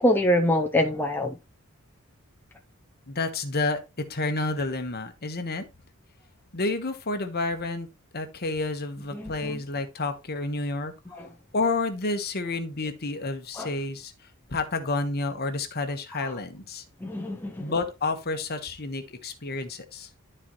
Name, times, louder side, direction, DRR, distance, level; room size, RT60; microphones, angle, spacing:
voice 1, 0.0-1.3 9.1-9.6 11.2-11.3 13.6-13.7 16.2-16.3 17.0-17.7, left 1 dB, 10° left, 0.6 m, -25 dB
voice 2, 3.1-3.8 4.1-5.6 6.5-7.9 8.1-10.9 11.5-14.1 14.5-16.8 17.6-20.1, left 3 dB, 45° left, 1.2 m, -30 dB
12.0 x 4.4 x 3.1 m
head